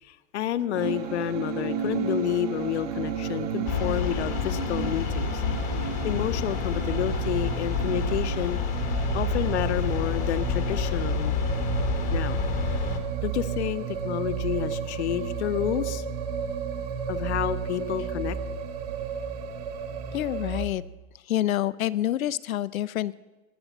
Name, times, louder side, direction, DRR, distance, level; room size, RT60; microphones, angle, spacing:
voice 1, 0.0-5.4 5.7-8.6 9.1-11.3 12.1-12.4 13.2-16.0 17.1-18.4, left 11 dB, 55° left, 13 dB, 0.9 m, -30 dB
sound 1, 0.7-20.7, right 7 dB, 30° right, 0.8 m, -32 dB
sound 2, 3.7-13.0, left 8 dB, 20° left, 1.0 m, -29 dB
voice 2, 20.1-20.8 21.2-23.1, left 13 dB, 90° left, 16 dB, 0.7 m, -27 dB
18.5 x 7.8 x 7.2 m, 1.2 s
hypercardioid pair, 165°, 40 cm